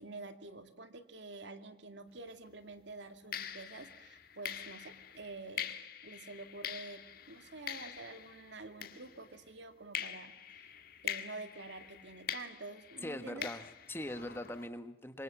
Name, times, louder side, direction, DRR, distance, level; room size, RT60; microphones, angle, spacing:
voice 1, 0.0-5.7 6.0-10.7 11.0-13.5, right 3 dB, 70° right, 8 dB, 2.3 m, -48 dB
sound 1, 2.2-2.4 3.3-9.5 9.9-14.7, left 9 dB, 50° left, 1.7 m, -44 dB
voice 2, 13.0-15.2, left 1 dB, 10° left, 9 dB, 1.3 m, -42 dB
26.5 x 24.0 x 7.3 m, 0.79 s
head